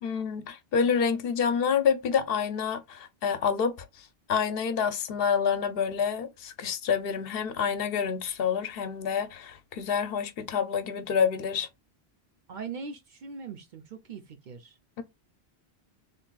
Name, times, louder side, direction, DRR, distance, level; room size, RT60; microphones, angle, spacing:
voice 1, 0.0-11.7, left 6 dB, 70° left, 0.7 m, -28 dB
voice 2, 12.5-14.8, right 5 dB, 55° right, 0.6 m, -41 dB
3.7 x 3.4 x 2.3 m
omnidirectional pair, 1.1 m